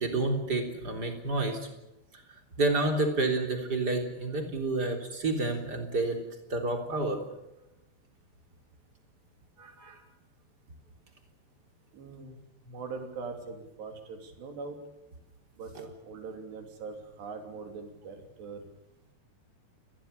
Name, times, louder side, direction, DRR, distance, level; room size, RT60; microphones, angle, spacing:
voice 1, 0.0-1.6 2.6-6.2 6.5-7.2 9.6-10.0, right 2 dB, 25° right, 4 dB, 3.7 m, -29 dB
voice 2, 11.9-14.8 15.6-18.6, right 4 dB, 90° right, 5 dB, 5.3 m, -42 dB
29.5 x 20.5 x 6.9 m, 0.94 s
omnidirectional pair, 4.7 m